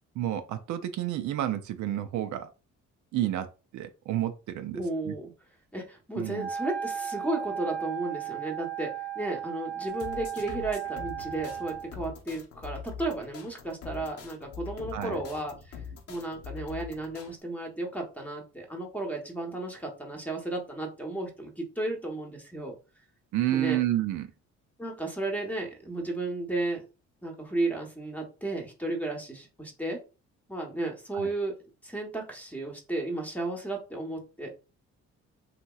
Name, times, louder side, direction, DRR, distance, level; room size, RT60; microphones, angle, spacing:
voice 1, 0.2-2.5 3.1-3.5 3.7-5.1 6.2-6.5 14.9-15.2 23.3-24.3 31.1-31.3, right 13 dB, 75° right, 0.5 m, -30 dB
voice 2, 4.7-5.3 5.7-15.8 16.1-22.7 23.4-23.8 24.8-26.8 27.2-30.0 30.5-31.6 31.8-34.5, right 2 dB, 5° left, 0.8 m, -34 dB
Wind instrument woodwind instrument, 6.3-11.9, right 8 dB, 35° right, 0.6 m, -35 dB
sound 1, 9.9-17.3, left 6 dB, 50° left, 0.7 m, -43 dB
2.9 x 2.8 x 2.2 m
cardioid pair, 90°, 30 cm